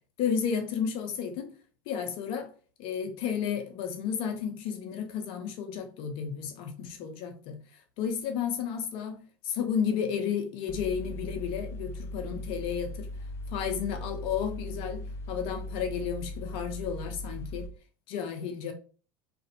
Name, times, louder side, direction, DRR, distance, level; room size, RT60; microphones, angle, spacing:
voice 1, 0.2-1.5 1.9-2.5 2.8-7.6 8.0-13.1 13.5-17.7 18.1-18.7, left 7 dB, 55° left, 0.7 m, -32 dB
Mechanical fan, 10.7-17.7, left 1 dB, 25° left, 0.4 m, -39 dB
2.5 x 2.4 x 2.7 m
hypercardioid pair, 85°, 11 cm